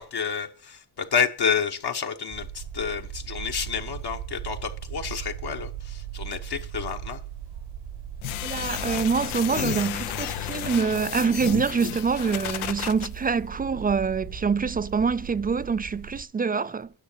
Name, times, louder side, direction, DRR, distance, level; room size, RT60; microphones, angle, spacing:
voice 1, 0.0-7.2, left 6 dB, 55° left, 1.2 m, -29 dB
sound 1, 2.3-16.2, right 9 dB, 80° right, 1.9 m, -39 dB
sound 2, 8.2-13.1, left 15 dB, 80° left, 0.6 m, -32 dB
voice 2, 8.4-16.9, right 5 dB, 20° right, 0.3 m, -25 dB
9.9 x 6.4 x 5.7 m
supercardioid pair, 55°, 48 cm